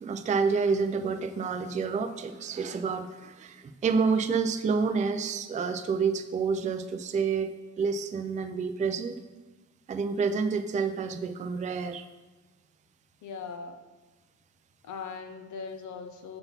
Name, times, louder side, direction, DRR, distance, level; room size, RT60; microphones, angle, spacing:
voice 1, 0.0-7.5 7.8-9.2 9.9-12.1, right 5 dB, 25° right, 8 dB, 0.3 m, -28 dB
voice 2, 13.2-13.8 14.8-16.4, left 5 dB, 90° left, 7 dB, 0.6 m, -39 dB
5.8 x 3.9 x 5.5 m, 1.2 s
cardioid pair, 105°, 29 cm